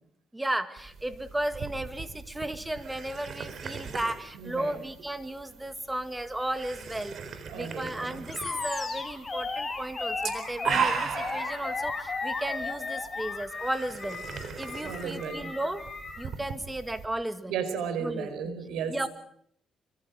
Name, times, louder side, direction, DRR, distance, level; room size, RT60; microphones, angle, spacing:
voice 1, 0.3-7.2 7.5-14.2 14.6-15.9 16.2-17.6 18.0-18.3 18.9-19.1, right 1 dB, 10° right, 10 dB, 2.1 m, -34 dB
sound 1, 0.8-17.1, right 6 dB, 60° right, 4.1 m, -38 dB
voice 2, 4.4-4.7 7.5-8.2 14.8-15.5 17.5-19.0, right 6 dB, 85° right, 11 dB, 4.7 m, -34 dB
Animal, 8.3-16.3, left 3 dB, 30° left, 5.0 m, -35 dB
26.0 x 24.5 x 5.1 m, 0.65 s
cardioid pair, 90°, 0 cm